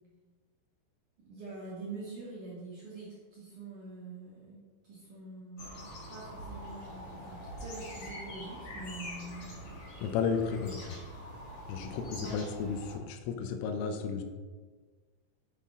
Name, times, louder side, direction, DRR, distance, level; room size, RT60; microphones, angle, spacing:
voice 1, 1.2-4.6 4.8-9.7 11.8-12.4, right 3 dB, 55° right, -7 dB, 2.3 m, -45 dB
sound 1, 5.6-13.0, equal, 50° left, 1.8 m, -44 dB
voice 2, 10.0-11.0 11.7-14.2, left 6 dB, 80° left, 5 dB, 3.4 m, -33 dB
9.6 x 8.6 x 3.7 m, 1.4 s
omnidirectional pair, 5.9 m